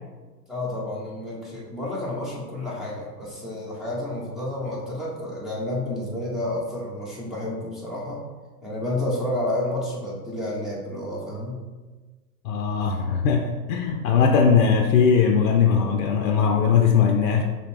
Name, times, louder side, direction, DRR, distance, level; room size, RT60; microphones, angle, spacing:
voice 1, 0.5-8.2 8.6-11.6, left 1 dB, ahead, -7 dB, 1.0 m, -30 dB
voice 2, 12.4-17.4, left 6 dB, 60° left, 3 dB, 0.6 m, -20 dB
6.2 x 2.3 x 3.5 m, 1.3 s
hypercardioid pair, 120°, 49 cm